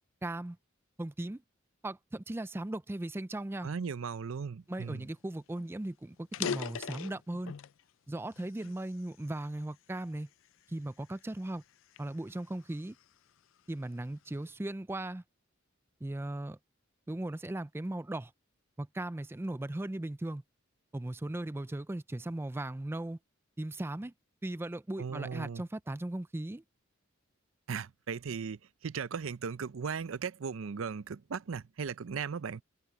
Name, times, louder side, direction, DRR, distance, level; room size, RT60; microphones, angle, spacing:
voice 1, 0.2-0.6 1.0-1.4 1.8-3.7 4.7-7.5 8.1-10.3 10.7-11.6 12.0-13.0 13.7-15.2 16.0-16.6 17.1-18.3 18.8-20.4 20.9-23.2 23.6-24.1 24.4-26.6, right 1 dB, 10° right, 0.4 m, -37 dB
voice 2, 3.6-5.0 25.0-25.6 27.7-32.6, right 6 dB, 80° right, 0.5 m, -37 dB
sound 1, 5.1-5.2 5.5-5.7 6.2-7.8 8.3-9.6 10.2-10.5 11.1-13.1, left 7 dB, 75° left, 0.4 m, -40 dB
head